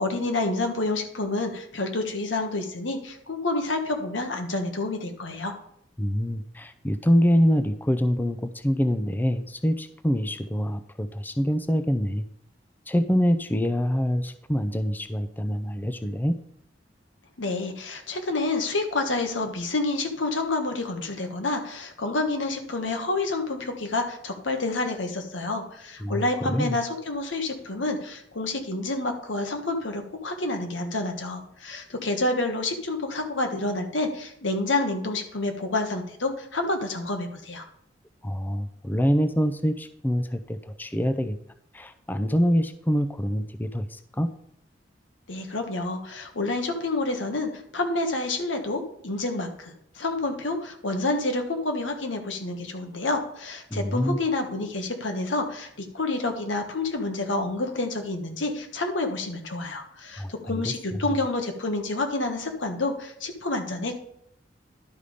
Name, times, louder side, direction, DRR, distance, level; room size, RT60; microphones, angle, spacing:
voice 1, 0.0-5.5 17.4-37.6 45.3-64.0, left 2 dB, 90° left, 5 dB, 1.4 m, -28 dB
voice 2, 6.0-12.3 12.9-16.4 26.0-26.8 38.2-41.4 41.7-44.3 53.7-54.2 60.2-60.7, equal, 10° left, 10 dB, 0.4 m, -25 dB
11.5 x 5.3 x 5.0 m, 0.71 s
head